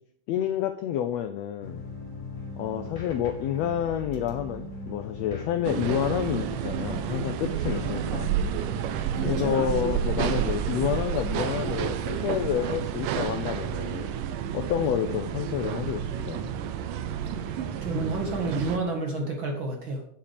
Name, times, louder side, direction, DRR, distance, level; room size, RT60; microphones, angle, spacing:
voice 1, 0.3-1.8 2.6-8.3 9.2-14.1 14.5-16.5, left 10 dB, 80° left, 8 dB, 1.5 m, -29 dB
sound 1, 1.6-8.7, left 2 dB, 30° left, 1.8 m, -39 dB
sound 2, 5.6-18.8, right 9 dB, 90° right, 2.4 m, -30 dB
voice 2, 9.2-9.6 17.3-20.0, right 2 dB, 45° right, 1 dB, 2.0 m, -30 dB
8.7 x 8.4 x 5.1 m, 0.64 s
omnidirectional pair, 3.7 m